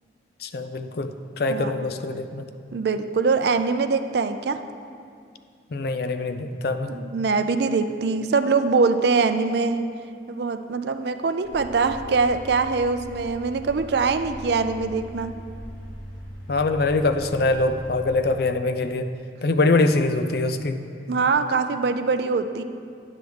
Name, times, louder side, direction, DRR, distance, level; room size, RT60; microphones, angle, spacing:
voice 1, 0.4-2.5 5.7-7.0 16.5-19.1 19.4-20.8, left 2 dB, 55° left, 9 dB, 0.4 m, -23 dB
voice 2, 2.7-4.6 6.9-9.8 10.3-15.4 21.1-22.6, right 4 dB, 60° right, 9 dB, 0.4 m, -23 dB
sound 1, 11.4-18.3, equal, 85° left, 2.3 m, -40 dB
9.8 x 7.8 x 3.5 m, 2.3 s
head